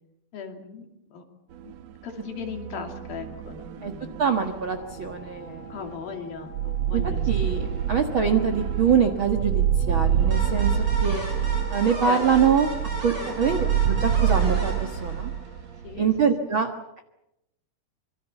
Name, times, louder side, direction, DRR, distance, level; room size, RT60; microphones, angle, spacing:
voice 1, 0.3-1.2 1.6-1.7 2.0-4.3 5.7-7.5 11.1-11.4 12.0-12.3 13.2-13.4 15.8-16.0, left 5 dB, 65° left, 4 dB, 4.4 m, -38 dB
sound 1, 1.6-1.9 2.2-16.2, right 9 dB, 80° right, 1.5 m, -27 dB
voice 2, 4.2-5.6 6.9-7.0 7.3-11.2 11.7-12.7 13.0-13.6 13.9-15.3 16.0-16.7, right 6 dB, 55° right, 5 dB, 1.4 m, -24 dB
sound 2, 4.8-14.8, left 4 dB, 50° left, 4.4 m, -49 dB
sound 3, 10.3-15.7, equal, 25° right, 8.0 m, -36 dB
26.0 x 24.0 x 7.1 m, 0.85 s
omnidirectional pair, 4.6 m